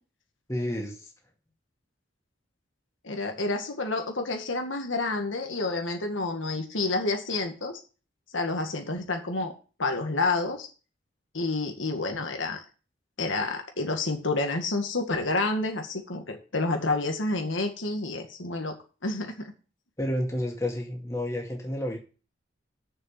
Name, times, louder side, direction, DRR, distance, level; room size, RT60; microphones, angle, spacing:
voice 1, 0.5-1.1 20.0-22.0, left 1 dB, 15° left, 0 dB, 2.1 m, -30 dB
voice 2, 3.0-7.8 8.3-9.5 9.8-10.7 11.3-12.6 13.2-18.8 19.0-19.5, left 3 dB, 85° left, 4 dB, 1.9 m, -29 dB
7.2 x 6.8 x 7.8 m, 0.36 s
head